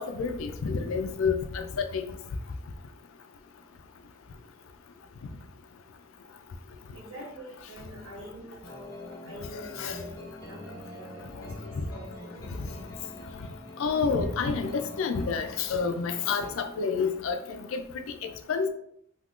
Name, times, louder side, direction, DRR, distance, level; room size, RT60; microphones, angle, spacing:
voice 1, 0.0-2.2 9.5-10.0 11.8-11.9 13.8-17.8 18.5-18.7, left 5 dB, 75° left, 7 dB, 0.4 m, -29 dB
voice 2, 6.9-12.8, equal, 80° right, -5 dB, 1.5 m, -45 dB
sound 1, 8.6-16.5, left 2 dB, 20° left, 0.7 m, -45 dB
3.6 x 2.8 x 2.4 m, 0.70 s
head